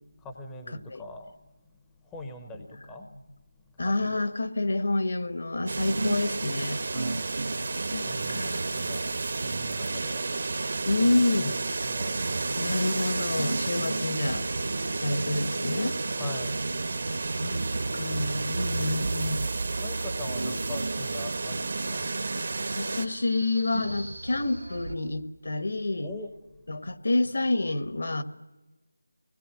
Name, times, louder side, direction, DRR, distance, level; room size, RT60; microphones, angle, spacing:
voice 1, 0.1-3.1 3.7-4.3 6.9-7.5 7.8-12.6 16.1-17.4 19.8-22.4 26.0-26.3, left 2 dB, 5° left, 4 dB, 0.9 m, -43 dB
voice 2, 3.8-6.8 7.9-8.9 10.8-11.5 12.6-14.5 14.9-16.0 17.4-17.6 17.9-19.5 20.4-20.5 22.7-26.1 26.7-28.2, left 2 dB, 65° left, 10 dB, 1.5 m, -28 dB
sound 1, 5.6-10.5 10.9-11.0 11.8-23.9, right 2 dB, 70° right, 2.4 m, -37 dB
sound 2, 5.7-23.1, right 3 dB, 50° right, 1.2 m, -32 dB
sound 3, 14.3-24.9, right 2 dB, 85° right, 1.7 m, -40 dB
24.0 x 20.0 x 7.5 m, 1.1 s
figure-of-eight pair, 175°, 0 cm